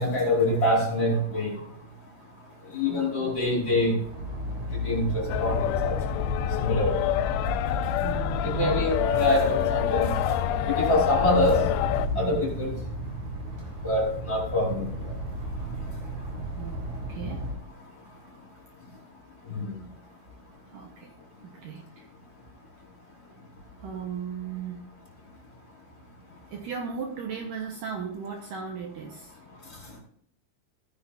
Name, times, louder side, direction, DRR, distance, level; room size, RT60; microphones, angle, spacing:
voice 1, 0.0-1.5 2.7-4.0 4.8-5.9 6.6-7.0 8.4-10.1 10.7-11.6 12.1-12.7 13.8-14.8 19.5-19.6, left 1 dB, 25° left, -3 dB, 4.7 m, -25 dB
voice 2, 2.9-3.3 8.0-8.8 12.1-12.4 16.6-17.4 20.7-21.1 21.4-22.1 23.8-24.8 26.5-29.4, right 6 dB, 70° right, 2 dB, 2.4 m, -36 dB
sound 1, 4.0-17.6, equal, 45° right, 3.8 m, -35 dB
sound 2, 5.3-12.1, left 10 dB, 80° left, 2.4 m, -27 dB
16.0 x 9.6 x 2.6 m, 0.67 s
omnidirectional pair, 4.5 m